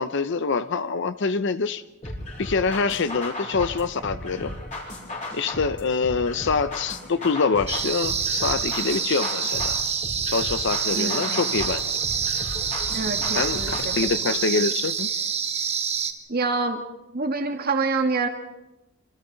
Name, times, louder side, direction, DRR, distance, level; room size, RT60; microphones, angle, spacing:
voice 1, 0.0-1.8 2.4-4.5 5.3-9.8 10.3-11.8 13.3-15.1, left 4 dB, 60° left, 13 dB, 0.7 m, -25 dB
sound 1, 2.0-14.0, left 1 dB, 40° left, 6.1 m, -35 dB
sound 2, 7.7-16.1, right 7 dB, 30° right, 1.4 m, -27 dB
voice 2, 10.9-11.4 12.9-13.9 14.2-14.5 16.3-16.8 17.1-18.3, right 3 dB, 50° right, 6 dB, 1.8 m, -26 dB
27.5 x 26.0 x 4.0 m, 1.0 s
head